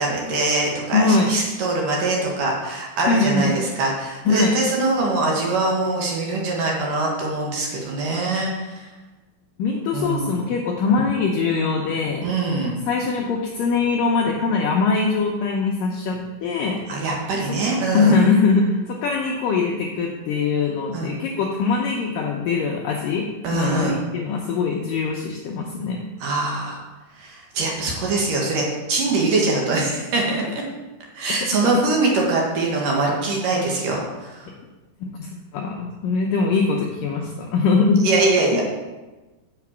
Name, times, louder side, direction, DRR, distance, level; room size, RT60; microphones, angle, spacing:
voice 1, 0.0-8.9 9.9-10.4 12.2-12.8 16.9-18.2 20.9-21.1 23.4-24.0 26.2-26.8 27.2-30.4 31.2-34.4 38.0-38.6, right 2 dB, 60° right, -2 dB, 2.7 m, -23 dB
voice 2, 0.9-1.3 3.1-3.4 4.3-4.6 9.6-12.3 12.9-16.8 17.9-23.3 23.5-26.0 35.0-38.0, left 4 dB, 85° left, 0 dB, 1.9 m, -22 dB
7.6 x 5.9 x 7.2 m, 1.2 s
omnidirectional pair, 4.9 m